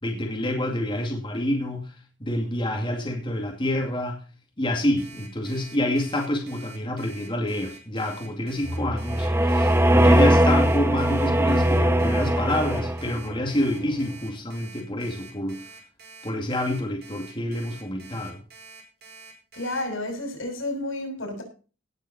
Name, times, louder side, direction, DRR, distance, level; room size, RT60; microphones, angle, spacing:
voice 1, 0.0-1.9 2.2-4.2 4.6-15.6 16.2-18.4, left 1 dB, 25° left, 2.3 m, -27 dB
Alarm, 5.0-19.8, right 4 dB, 55° right, 5.1 m, -46 dB
sound 1, 8.6-13.3, right 1 dB, 15° right, 1.1 m, -20 dB
voice 2, 19.5-21.4, left 1 dB, 85° left, 6.6 m, -31 dB
18.0 x 7.5 x 4.3 m
head